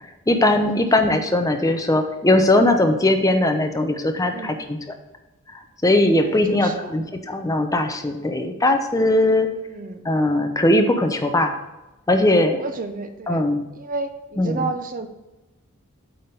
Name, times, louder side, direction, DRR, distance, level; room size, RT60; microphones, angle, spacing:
voice 1, 0.3-4.8 5.8-9.5 10.0-11.5 12.1-12.6 13.3-13.6 14.4-14.7, left 1 dB, 15° left, 5 dB, 0.8 m, -19 dB
voice 2, 4.2-4.6 6.2-6.9 9.6-10.0 12.1-13.5 13.7-15.1, right 3 dB, 40° right, 8 dB, 0.7 m, -32 dB
8.8 x 3.7 x 6.6 m, 1.0 s
head